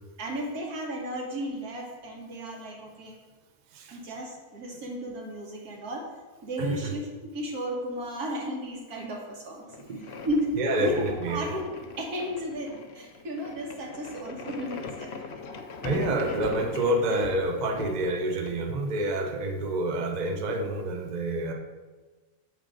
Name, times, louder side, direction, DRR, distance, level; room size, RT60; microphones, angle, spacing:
voice 1, 0.2-3.2 3.9-6.1 6.4-9.6 10.2-15.1, equal, 85° right, -1 dB, 1.7 m, -34 dB
voice 2, 6.6-6.9 9.8-10.1 10.6-11.4 15.8-21.5, right 1 dB, 45° right, 3 dB, 0.6 m, -28 dB
sound 1, 9.7-19.2, left 4 dB, 60° left, 0.7 m, -40 dB
7.4 x 3.3 x 5.1 m, 1.3 s
omnidirectional pair, 1.5 m